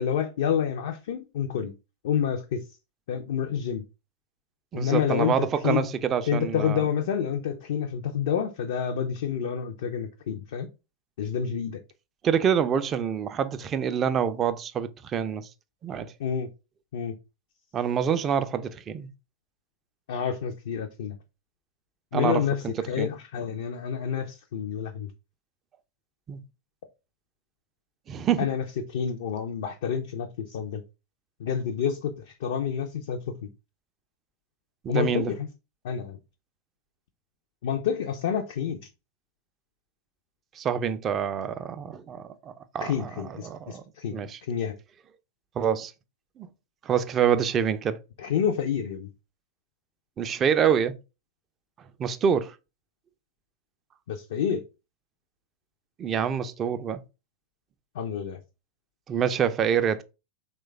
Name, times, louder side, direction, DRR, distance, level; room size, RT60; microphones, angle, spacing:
voice 1, 0.0-1.7 2.0-2.6 3.1-3.8 4.7-5.9 6.3-10.7 11.2-11.8 16.2-16.5 16.9-17.2 20.1-21.2 22.1-25.1 28.4-28.6 28.9-30.8 31.4-33.5 34.9-35.5 35.8-36.2 37.6-38.9 42.8-44.2 44.5-44.7 48.2-49.1 54.1-54.6 57.9-58.4, left 8 dB, 60° left, 0.3 m, -28 dB
voice 2, 4.7-6.9 12.2-15.5 15.8-16.1 17.7-19.1 22.1-23.1 26.3-26.4 28.1-28.5 34.8-35.3 40.6-43.1 43.4-43.8 44.1-44.4 45.6-45.9 46.4-46.5 46.8-48.0 50.2-51.0 52.0-52.5 56.0-57.0 59.1-60.0, right 8 dB, 30° right, 0.3 m, -26 dB
3.1 x 2.2 x 3.4 m
figure-of-eight pair, 90°, 0 cm